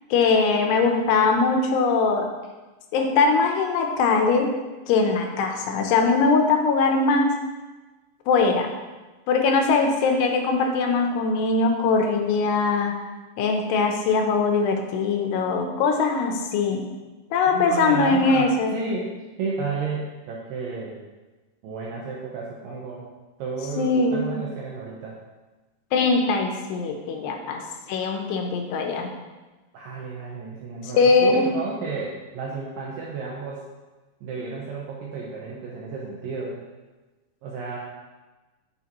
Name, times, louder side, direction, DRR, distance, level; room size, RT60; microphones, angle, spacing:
voice 1, 0.1-2.3 2.9-4.5 4.9-7.3 8.3-8.7 9.3-12.9 13.4-16.9 17.3-18.7 23.8-24.4 25.9-27.6 27.9-29.1 30.8-31.4, left 4 dB, 80° left, 3 dB, 2.8 m, -21 dB
voice 2, 17.5-19.1 19.4-21.0 21.6-23.1 23.4-25.2 29.7-33.6 34.2-36.6 37.4-37.8, right 4 dB, 75° right, -4 dB, 2.0 m, -32 dB
9.3 x 6.1 x 3.0 m, 1.2 s
omnidirectional pair, 4.9 m